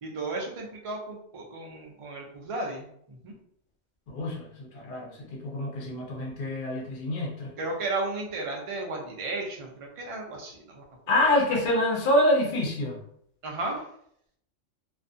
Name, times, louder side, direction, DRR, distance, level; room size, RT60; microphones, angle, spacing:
voice 1, 0.0-3.3 7.6-10.8 13.4-13.9, right 2 dB, 50° right, 0 dB, 0.3 m, -34 dB
voice 2, 4.1-7.5 11.1-13.0, left 1 dB, 60° left, -1 dB, 0.7 m, -26 dB
2.4 x 2.2 x 2.6 m, 0.68 s
omnidirectional pair, 1.3 m